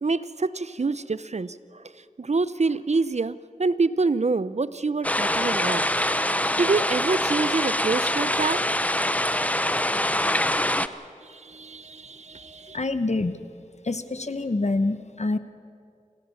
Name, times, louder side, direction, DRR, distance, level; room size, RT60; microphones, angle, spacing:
voice 1, 0.0-1.8 2.2-5.9 6.6-8.6 11.2-12.8, right 3 dB, 55° right, 16 dB, 0.6 m, -26 dB
sound 1, 5.0-10.9, left 1 dB, 10° left, 0.7 m, -24 dB
voice 2, 12.7-13.4 13.8-15.4, left 2 dB, 55° left, 12 dB, 1.0 m, -26 dB
26.5 x 16.0 x 7.1 m, 2.3 s
wide cardioid pair, 60°, 14 cm